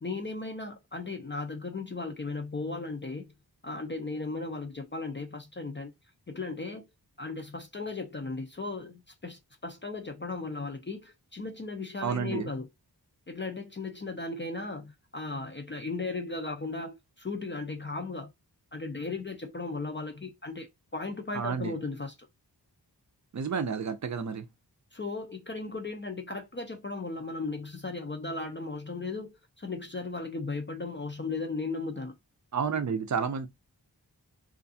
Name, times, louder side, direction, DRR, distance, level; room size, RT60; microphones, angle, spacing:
voice 1, 0.0-3.3 3.6-5.9 6.3-6.9 7.2-12.7 13.3-18.3 18.7-22.1 24.9-32.2, left 3 dB, 30° left, 0.4 m, -36 dB
voice 2, 12.0-12.5 21.3-21.8 23.3-24.5 32.5-33.5, right 6 dB, 45° right, 0.5 m, -30 dB
2.5 x 2.3 x 2.6 m
wide cardioid pair, 55°, 42 cm